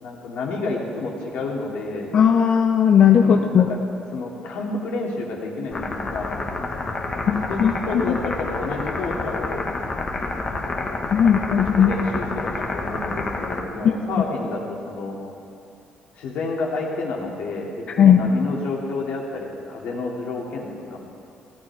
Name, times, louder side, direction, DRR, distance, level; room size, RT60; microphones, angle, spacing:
voice 1, 0.0-2.1 3.2-3.8 4.1-6.4 7.2-9.6 10.6-15.2 16.2-21.0, left 3 dB, 75° left, -2 dB, 2.6 m, -30 dB
voice 2, 2.1-3.7 7.3-8.0 11.1-11.9 18.0-18.2, left 8 dB, 50° left, 4 dB, 0.6 m, -16 dB
sound 1, 5.7-13.6, left 3 dB, 35° left, 1.5 m, -29 dB
17.0 x 11.5 x 4.8 m, 2.6 s
cardioid pair, 120°, 2 cm